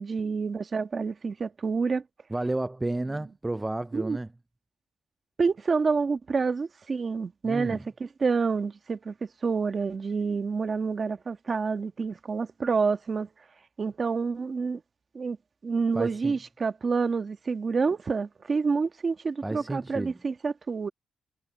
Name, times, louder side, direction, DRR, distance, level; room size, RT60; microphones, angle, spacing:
voice 1, 0.0-2.0 3.9-4.2 5.4-13.3 13.8-14.8 15.1-15.4 15.6-20.9, right 5 dB, 30° right, 1.4 m, -28 dB
voice 2, 2.3-4.3 7.4-7.8 15.9-16.3 19.4-20.1, right 2 dB, 10° right, 0.3 m, -31 dB
cardioid pair, 160°, 0 cm